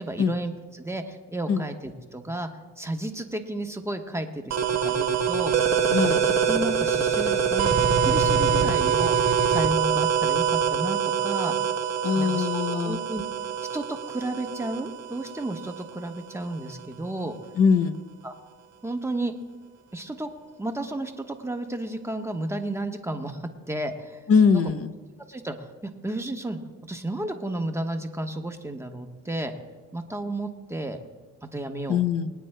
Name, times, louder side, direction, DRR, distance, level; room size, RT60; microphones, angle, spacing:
voice 1, 0.0-2.5 2.8-5.5 6.0-13.2 13.6-17.4 18.2-18.3 18.8-19.4 19.9-20.3 20.6-24.2 24.5-24.6 25.3-26.6 26.9-29.5 29.9-31.0 31.5-32.0, right 1 dB, 10° right, 4 dB, 1.2 m, -32 dB
sound 1, 4.5-15.9, right 7 dB, 65° right, 1.3 m, -24 dB
voice 2, 12.0-13.0 17.6-18.0 24.3-24.9 31.9-32.3, left 6 dB, 50° left, 10 dB, 0.7 m, -22 dB
24.5 x 9.2 x 2.2 m, 1.4 s
cardioid pair, 90°, 30 cm